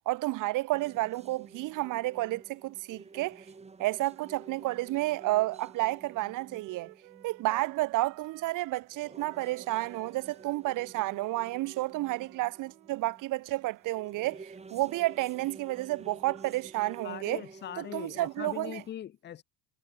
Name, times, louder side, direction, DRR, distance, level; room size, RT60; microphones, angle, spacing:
voice 1, 0.1-3.4 3.8-6.9 7.2-17.4 17.8-18.8, right 18 dB, 45° right, 0.4 m, -31 dB
sound 1, 0.7-18.9, right 4 dB, 15° right, 0.9 m, -52 dB
Wind instrument woodwind instrument, 4.9-8.9 9.2-13.1, right 29 dB, 85° right, 4.6 m, -55 dB
voice 2, 17.0-19.4, left 10 dB, 25° left, 0.4 m, -41 dB
supercardioid pair, 95°, 48 cm